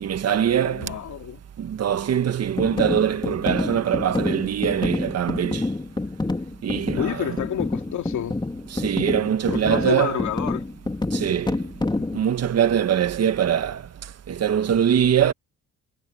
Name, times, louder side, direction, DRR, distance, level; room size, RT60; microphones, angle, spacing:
voice 1, 0.0-0.9 1.6-5.7 6.6-7.3 8.7-10.2 11.1-11.5 12.1-13.8 14.3-15.3, right 9 dB, 55° right, 1.6 m, -22 dB
voice 2, 0.6-1.4 7.0-8.4 9.5-10.6 12.0-12.1, left 10 dB, 70° left, 2.9 m, -29 dB
sound 1, 2.6-12.2, left 2 dB, 15° left, 3.5 m, -28 dB
cardioid pair, 90°, 30 cm